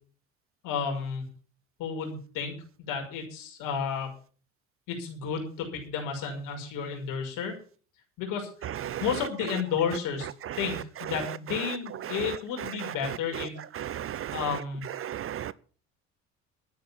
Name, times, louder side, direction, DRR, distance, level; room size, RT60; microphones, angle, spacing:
voice 1, 0.6-1.2 1.8-4.1 4.9-7.5 8.2-8.5 9.0-10.3 10.6-13.6 14.3-14.9, left 6 dB, 60° left, 6.0 m, -32 dB
voice 2, 13.8-14.4 15.0-15.5, right 11 dB, 35° right, 0.7 m, -34 dB
12.5 x 9.5 x 7.2 m
hypercardioid pair, 60°, 37 cm